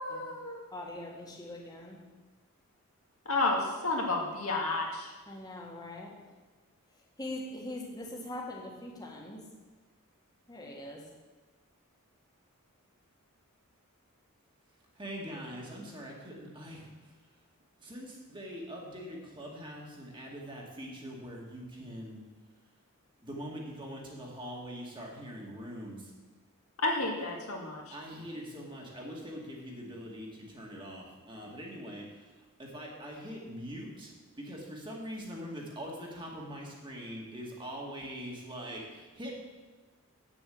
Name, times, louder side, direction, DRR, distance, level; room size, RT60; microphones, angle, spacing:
voice 1, 0.0-0.6 3.3-5.1 26.8-27.9, left 2 dB, 75° left, 0 dB, 2.0 m, -31 dB
voice 2, 0.7-2.0 5.3-6.1 7.2-9.4 10.5-11.0, left 1 dB, 15° left, -1 dB, 1.8 m, -42 dB
voice 3, 15.0-16.9 17.8-22.2 23.2-26.1 27.9-32.0 32.6-34.1 34.4-39.3, equal, 20° right, -2 dB, 2.0 m, -43 dB
8.5 x 7.2 x 7.9 m, 1.3 s
head